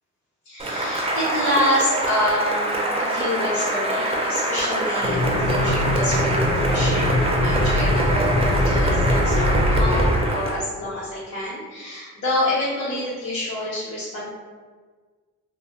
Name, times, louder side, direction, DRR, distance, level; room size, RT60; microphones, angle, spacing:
voice 1, 0.4-14.3, left 1 dB, 60° left, -10 dB, 1.0 m, -27 dB
Cheering / Applause, 0.6-10.6, right 1 dB, 20° right, 0.5 m, -25 dB
sound 1, 5.0-10.2, left 1 dB, 30° left, 0.6 m, -21 dB
2.3 x 2.2 x 3.0 m, 1.4 s
cardioid pair, 90°, 30 cm